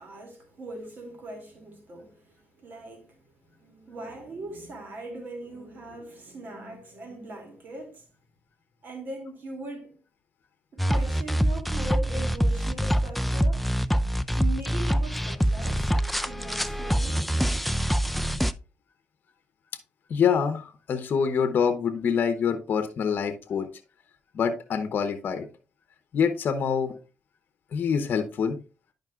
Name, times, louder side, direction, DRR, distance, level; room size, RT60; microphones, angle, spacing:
voice 1, 0.0-3.2 3.6-8.1 8.8-10.0 10.7-13.7 14.4-17.2, right 1 dB, 60° right, 2.6 m, -40 dB
sound 1, 10.8-18.5, equal, ahead, 0.4 m, -25 dB
voice 2, 20.1-23.7 24.3-25.5 26.1-26.9 27.7-28.6, left 6 dB, 65° left, 0.8 m, -25 dB
10.5 x 5.2 x 2.4 m
cardioid pair, 75°, 4 cm